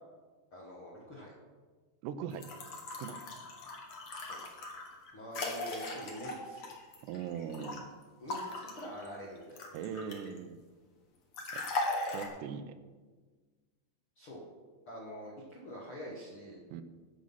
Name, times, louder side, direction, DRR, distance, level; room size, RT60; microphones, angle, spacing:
voice 1, 0.5-1.3 4.2-4.4 5.1-6.6 8.2-9.6 14.2-14.4 14.9-16.6, equal, 60° left, -4 dB, 1.4 m, -45 dB
voice 2, 2.0-2.5 3.0-3.2 7.0-7.9 9.7-10.6 11.5-11.6 12.0-12.8 16.7-16.8, right 7 dB, 80° right, 11 dB, 2.7 m, -40 dB
sound 1, 2.3-7.8 8.3-10.4 11.3-12.3, left 2 dB, 80° left, 1.2 m, -39 dB
15.5 x 6.3 x 5.5 m, 1.4 s
omnidirectional pair, 5.0 m